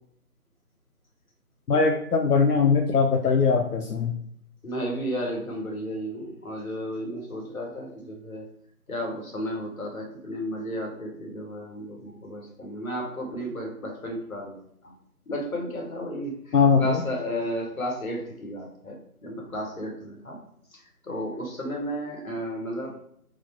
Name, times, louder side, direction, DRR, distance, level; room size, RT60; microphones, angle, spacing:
voice 1, 1.7-4.2 16.5-17.0, left 5 dB, 90° left, 3 dB, 0.6 m, -21 dB
voice 2, 4.6-8.5 8.9-14.5 14.8-14.9 15.3-20.4 20.7-22.9, equal, 65° left, 0 dB, 1.5 m, -33 dB
4.2 x 2.4 x 4.5 m, 0.68 s
figure-of-eight pair, 155°, 45 cm